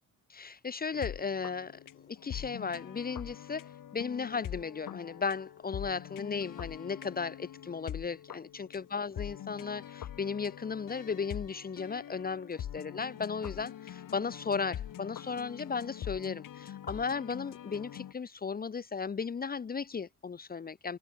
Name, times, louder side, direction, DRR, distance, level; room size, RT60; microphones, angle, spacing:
voice 1, 0.3-21.0, left 5 dB, 30° left, 0.7 m, -36 dB
sound 1, 0.9-18.1, left 10 dB, 75° left, 7.2 m, -44 dB
cardioid pair, 140°, 33 cm